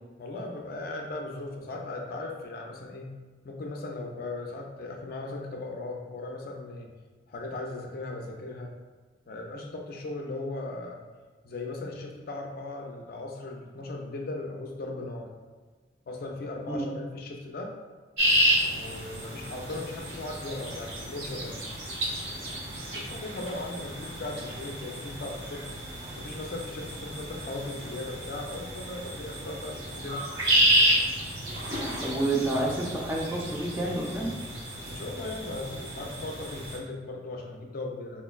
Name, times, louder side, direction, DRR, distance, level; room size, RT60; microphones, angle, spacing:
voice 1, 0.2-3.1 3.4-6.9 7.3-8.7 9.3-11.0 11.4-15.3 16.1-17.7 18.6-21.6 22.9-25.7 26.2-30.3 34.9-38.2, left 2 dB, 55° left, 1 dB, 0.4 m, -37 dB
sound 1, 18.2-36.8, equal, 80° right, 1.1 m, -30 dB
voice 2, 32.0-34.4, right 2 dB, 10° right, -3 dB, 0.5 m, -29 dB
4.3 x 2.1 x 2.3 m, 1.4 s
head